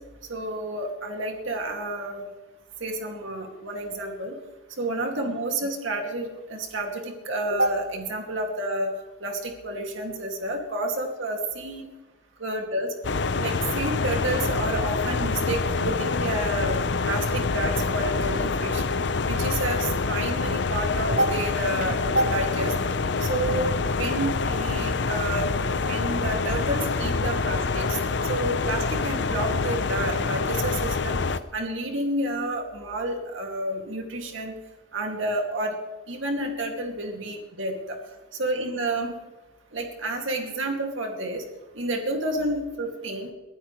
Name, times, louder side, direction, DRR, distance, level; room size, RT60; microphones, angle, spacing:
voice 1, 0.3-2.2 2.8-4.4 4.8-8.9 9.2-11.9 12.4-12.9 13.4-18.8 19.2-22.7 23.2-25.5 25.9-28.0 28.3-31.2 31.5-34.5 34.9-35.8 36.1-38.0 38.4-39.1 39.7-41.4 41.8-43.3, right 1 dB, 90° right, 2 dB, 2.5 m, -29 dB
sound 1, 13.0-31.4, left 4 dB, 65° left, 0.8 m, -26 dB
23.0 x 15.0 x 3.3 m, 1.1 s
head